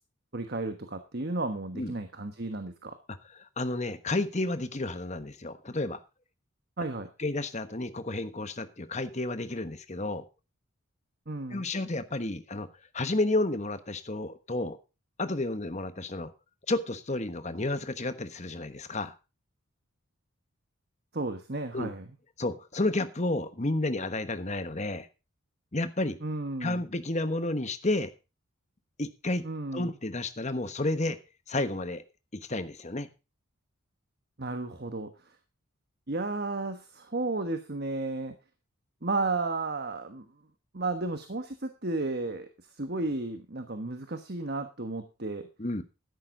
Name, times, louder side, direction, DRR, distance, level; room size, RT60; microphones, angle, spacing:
voice 1, 0.3-3.0 6.8-7.1 11.3-11.7 21.1-22.1 26.2-26.8 29.4-29.9 34.4-35.4 36.1-38.4 39.0-40.3 40.7-45.5, right 2 dB, 45° right, 8 dB, 1.3 m, -33 dB
voice 2, 3.6-6.0 7.2-10.2 11.5-12.7 12.9-14.8 15.2-16.3 16.7-19.1 21.7-21.9 22.4-25.1 25.7-26.2 26.6-28.1 29.0-29.4 29.7-31.2 31.5-32.0 32.3-33.1 45.6-45.8, left 2 dB, 35° left, 11 dB, 1.2 m, -31 dB
13.0 x 11.0 x 3.8 m, 0.29 s
head